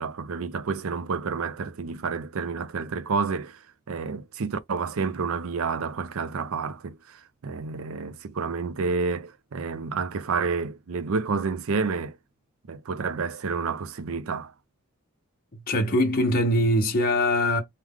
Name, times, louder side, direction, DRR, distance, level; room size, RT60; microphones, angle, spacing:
voice 1, 0.0-3.6 3.9-12.2 12.7-14.5, right 5 dB, 75° right, 0.5 m, -29 dB
voice 2, 15.7-17.6, left 1 dB, 45° left, 0.9 m, -22 dB
4.7 x 2.2 x 3.6 m
head